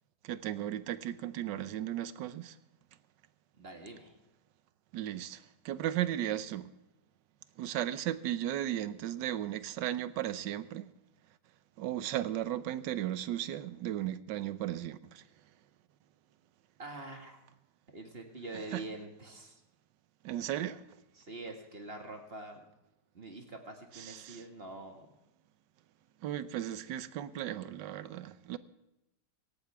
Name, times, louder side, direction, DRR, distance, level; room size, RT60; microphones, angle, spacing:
voice 1, 0.2-2.5 4.9-6.7 7.6-10.9 11.8-15.2 18.7-18.9 20.2-20.8 23.9-24.4 26.2-28.6, right 12 dB, 80° right, 1.4 m, -35 dB
voice 2, 3.6-4.2 16.8-17.4 17.9-19.6 21.2-22.6 23.1-25.1, right 2 dB, 35° right, 2.0 m, -45 dB
17.5 x 17.0 x 3.5 m
omnidirectional pair, 1.9 m